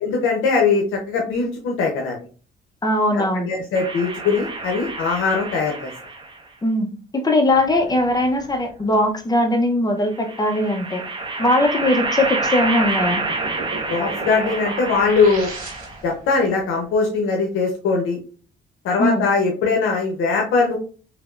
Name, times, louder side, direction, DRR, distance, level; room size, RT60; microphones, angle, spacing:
voice 1, 0.0-2.2 3.1-5.9 13.9-15.5 16.0-18.2 18.8-20.8, left 4 dB, 85° left, 1 dB, 0.7 m, -21 dB
voice 2, 2.8-3.5 6.6-11.0 11.4-13.2 19.0-19.3, left 1 dB, 20° left, 5 dB, 0.7 m, -20 dB
sound 1, 3.8-6.4 7.5-8.5 10.1-16.1, right 3 dB, 25° right, 0.8 m, -28 dB
sound 2, 12.7-16.2, right 3 dB, 45° right, 1.4 m, -34 dB
3.3 x 3.1 x 2.4 m, 0.38 s
cardioid pair, 90°, 20 cm